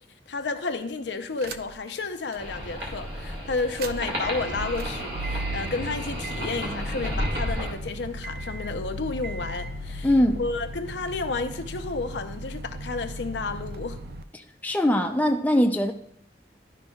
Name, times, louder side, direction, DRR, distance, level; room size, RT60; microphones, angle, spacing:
voice 1, 0.3-10.1 10.3-14.0, left 3 dB, 80° left, 0.6 m, -31 dB
sound 1, 1.4-1.9 2.3-2.4 3.6-14.2, right 1 dB, 55° right, 0.4 m, -36 dB
sound 2, 2.4-7.7, equal, 80° right, 2.0 m, -32 dB
voice 2, 10.0-10.4 14.6-15.9, left 1 dB, 10° left, 0.4 m, -21 dB
11.5 x 5.3 x 2.3 m
head